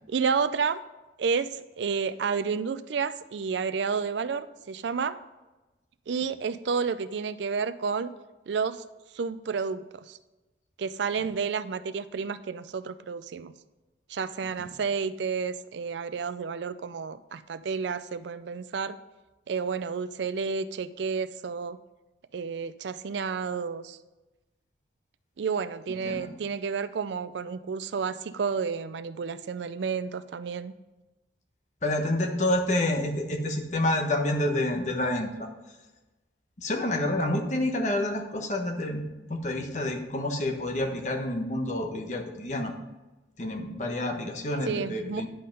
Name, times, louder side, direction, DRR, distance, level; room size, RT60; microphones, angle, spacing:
voice 1, 0.1-0.8 1.2-5.2 6.1-8.1 8.5-8.9 9.1-10.2 10.8-13.5 14.1-19.0 19.5-21.8 22.3-24.0 25.4-30.7 44.7-45.3, right 5 dB, 75° right, 14 dB, 0.4 m, -30 dB
voice 2, 31.8-35.5 36.6-39.0 39.3-42.7 43.4-45.3, left 1 dB, 40° left, 2 dB, 1.1 m, -28 dB
10.0 x 5.7 x 5.2 m, 1.1 s
head